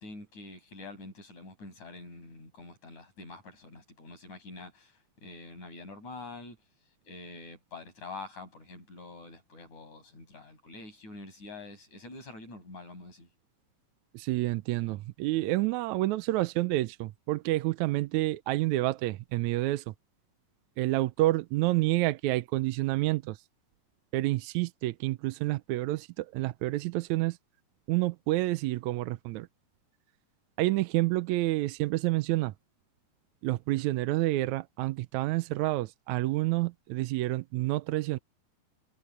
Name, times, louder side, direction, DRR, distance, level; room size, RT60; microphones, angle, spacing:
voice 1, 0.0-6.6 7.0-13.3, left 3 dB, 75° left, 9.6 m, -46 dB
voice 2, 14.1-19.9 20.8-23.4 24.1-27.4 27.9-29.5 30.6-32.5 33.4-38.2, right 18 dB, 80° right, 1.9 m, -29 dB
omnidirectional pair, 3.4 m